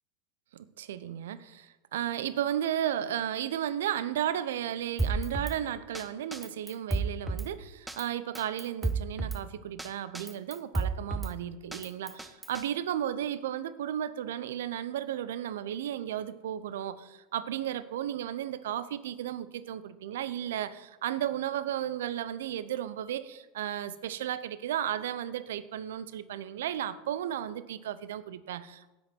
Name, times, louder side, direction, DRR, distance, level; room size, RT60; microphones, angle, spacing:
voice 1, 0.5-28.9, right 11 dB, 75° right, 0.7 m, -34 dB
Drum kit, 5.0-5.6 5.9-6.0 6.3-7.5 7.9-8.0 8.3-9.4 9.8-9.9 10.1-11.3 11.7-12.6, right 3 dB, 10° right, 1.1 m, -31 dB
17.5 x 7.9 x 4.5 m
hypercardioid pair, 85°, 0 cm